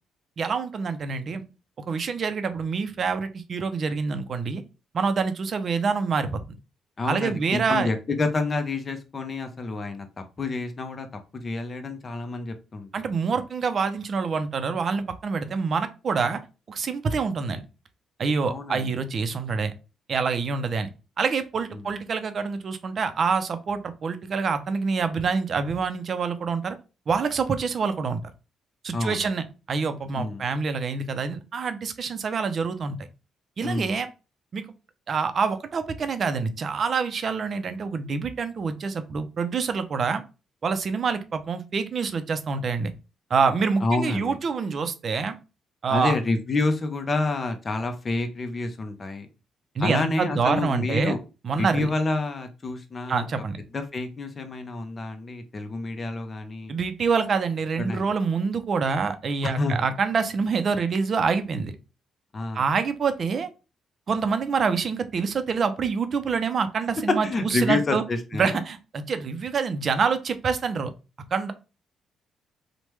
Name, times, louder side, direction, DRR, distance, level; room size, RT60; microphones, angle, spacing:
voice 1, 0.4-1.4 1.9-4.6 4.9-6.4 7.1-7.9 12.9-16.4 16.7-17.6 18.2-19.7 20.1-20.9 21.2-26.8 27.1-28.2 28.8-33.0 33.6-34.1 34.5-34.6 35.1-40.2 40.6-42.9 43.3-45.4 45.8-46.1 49.8-51.1 51.4-51.9 53.1-53.6 56.7-61.7 62.5-63.5 64.1-68.0 68.3-70.9 71.3-71.5, right 5 dB, 50° right, 9 dB, 0.4 m, -26 dB
voice 2, 7.0-11.1 11.3-12.9 18.4-18.9 21.7-21.8 28.9-29.3 30.2-30.4 33.6-34.0 43.8-44.4 45.9-49.3 49.8-51.2 51.6-53.2 53.7-56.7 57.8-58.1 59.4-59.8 62.3-62.6 67.2-68.6, left 3 dB, 35° left, 7 dB, 0.6 m, -28 dB
3.1 x 2.1 x 3.0 m, 0.31 s
cardioid pair, 90°, 0 cm